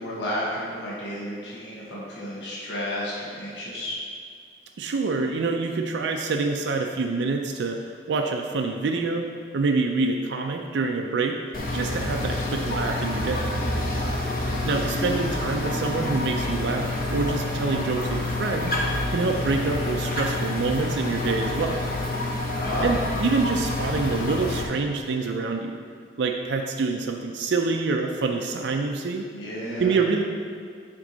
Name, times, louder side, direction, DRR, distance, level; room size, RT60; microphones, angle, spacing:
voice 1, 0.0-4.0 22.5-22.9 29.3-30.0, equal, 80° left, -7 dB, 1.2 m, -32 dB
voice 2, 4.8-9.3 9.5-11.4 11.7-13.5 14.6-18.7 19.1-21.8 22.8-25.8 26.2-29.3 29.8-30.2, right 4 dB, 80° right, 3 dB, 0.4 m, -26 dB
sound 1, 11.5-24.6, left 2 dB, 50° left, 0.8 m, -28 dB
6.1 x 4.5 x 3.9 m, 2.3 s
head